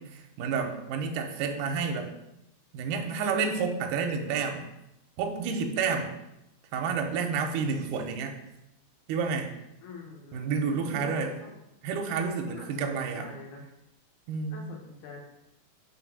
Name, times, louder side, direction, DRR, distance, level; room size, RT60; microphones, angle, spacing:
voice 1, 0.0-2.1 2.7-4.7 5.2-6.1 6.7-8.4 9.1-9.5 10.3-11.3 11.8-13.3 14.3-14.7, right 5 dB, 90° right, 4 dB, 2.2 m, -30 dB
voice 2, 9.8-11.5 12.5-13.6 14.5-15.2, left 4 dB, 80° left, 0 dB, 2.7 m, -46 dB
5.5 x 3.9 x 5.9 m, 0.88 s
omnidirectional pair, 3.5 m